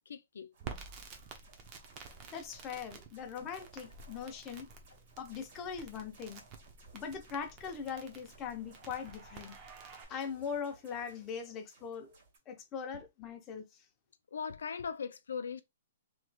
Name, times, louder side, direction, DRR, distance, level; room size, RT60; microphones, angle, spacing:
voice 1, 0.1-0.5 14.3-15.6, left 6 dB, 85° left, 0.3 m, -39 dB
sound 1, 0.5-12.4, right 4 dB, 50° right, 1.9 m, -63 dB
Crackle, 0.6-10.0, right 5 dB, 30° right, 0.7 m, -51 dB
voice 2, 2.3-4.7 5.2-6.4 6.9-9.6 10.1-12.1 12.5-13.8, left 7 dB, 20° left, 0.7 m, -41 dB
3.0 x 3.0 x 2.2 m
hypercardioid pair, 150°, 0 cm